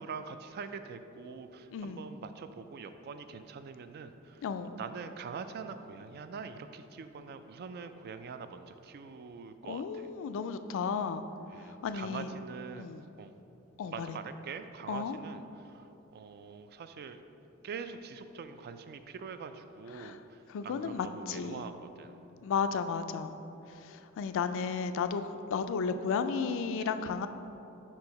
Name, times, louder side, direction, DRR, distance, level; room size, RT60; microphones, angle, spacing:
voice 1, 0.0-4.4 4.8-10.1 11.5-12.9 13.2-13.4 13.9-17.2 17.6-22.2, right 5 dB, 45° right, 9 dB, 0.3 m, -44 dB
voice 2, 1.7-2.1 4.4-4.8 9.7-11.2 11.7-12.3 12.8-13.0 13.8-14.2 14.9-15.2 19.9-20.2 20.5-21.7 22.4-23.4 23.7-25.2 25.5-27.3, left 6 dB, 65° left, 10 dB, 0.3 m, -33 dB
4.7 x 4.5 x 5.2 m, 3.0 s
head